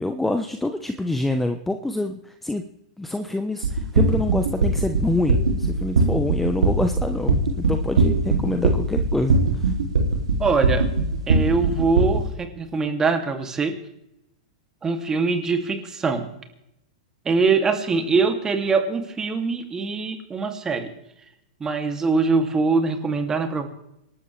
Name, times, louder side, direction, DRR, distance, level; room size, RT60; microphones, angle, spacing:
voice 1, 0.0-2.6 3.0-9.7, left 2 dB, 5° left, 7 dB, 1.0 m, -26 dB
sound 1, 3.6-12.2, right 4 dB, 75° right, 2.9 m, -19 dB
voice 2, 10.4-10.9 11.3-13.7 14.8-16.3 17.2-20.9 21.6-23.7, right 4 dB, 20° right, 5 dB, 2.6 m, -23 dB
26.5 x 12.5 x 3.4 m, 0.82 s
hypercardioid pair, 105°, 3 cm